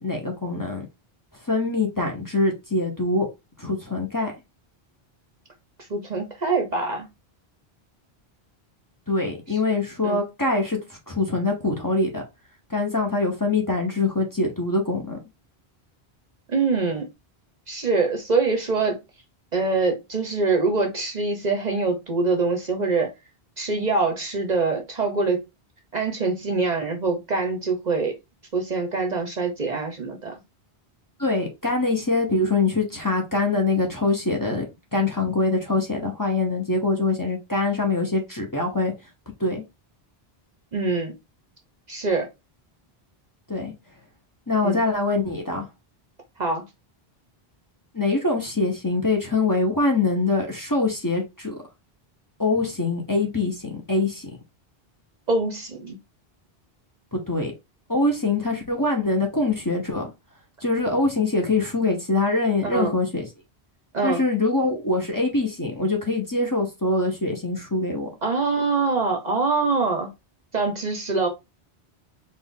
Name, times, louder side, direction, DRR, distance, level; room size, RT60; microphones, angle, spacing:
voice 1, 0.0-0.9 1.4-3.3 3.6-4.3 9.1-10.8 11.1-12.2 12.7-15.2 31.2-34.7 34.9-38.9 39.4-39.6 43.5-43.7 44.5-45.6 47.9-51.6 52.4-54.3 57.1-57.5 57.9-60.1 60.6-63.3 64.0-68.1, left 3 dB, 20° left, 1.0 m, -24 dB
voice 2, 5.9-7.1 9.5-9.6 10.0-10.2 16.5-17.1 17.7-19.0 19.5-23.1 23.6-25.4 25.9-28.2 28.5-30.3 40.7-41.1 41.9-42.3 44.6-44.8 46.4-46.6 55.3-56.0 62.6-62.9 63.9-64.2 68.2-70.1 70.5-71.3, right 3 dB, 45° right, 0.8 m, -24 dB
4.3 x 2.5 x 3.5 m
omnidirectional pair, 1.0 m